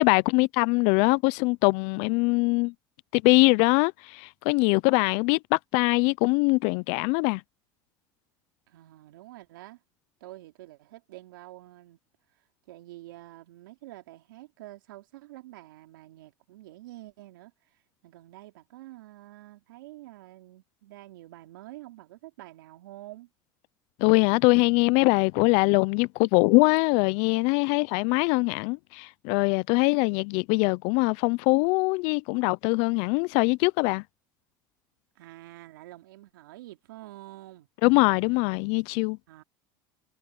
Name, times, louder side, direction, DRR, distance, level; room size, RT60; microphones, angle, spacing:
voice 1, 0.0-2.7 3.1-7.4 24.0-34.0 37.8-39.2, left 28 dB, 65° left, 0.6 m, -22 dB
voice 2, 8.7-9.8 10.2-12.0 12.7-23.3 35.2-37.7 39.3-39.4, right 17 dB, 80° right, 3.5 m, -47 dB
hypercardioid pair, 85°, 11 cm